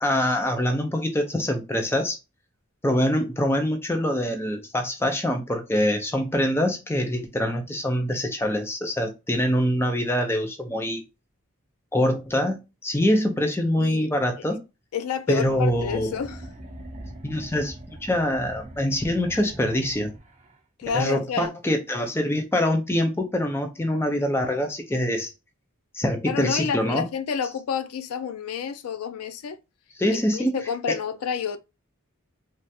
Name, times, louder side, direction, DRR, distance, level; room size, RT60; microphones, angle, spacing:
voice 1, 0.0-2.2 2.8-11.0 11.9-14.6 15.3-16.1 17.2-20.1 20.9-25.3 25.9-27.0 30.0-30.5, left 1 dB, 10° left, 0.4 m, -24 dB
voice 2, 13.8-14.1 14.9-16.4 20.8-21.5 26.2-29.6 30.1-31.6, left 7 dB, 80° left, 0.4 m, -29 dB
sound 1, 15.3-20.6, right 1 dB, 35° right, 0.6 m, -42 dB
3.2 x 2.4 x 2.7 m
head